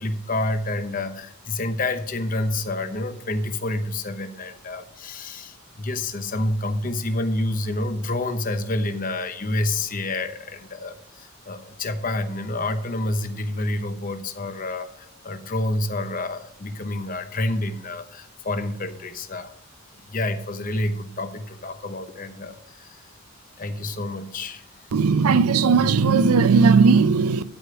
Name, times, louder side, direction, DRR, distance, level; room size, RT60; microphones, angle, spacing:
voice 1, 0.0-19.5 20.1-23.1 23.6-24.9, left 2 dB, 40° left, 0.8 m, -28 dB
voice 2, 24.9-27.4, right 5 dB, 90° right, 0.5 m, -17 dB
12.5 x 5.1 x 5.0 m
head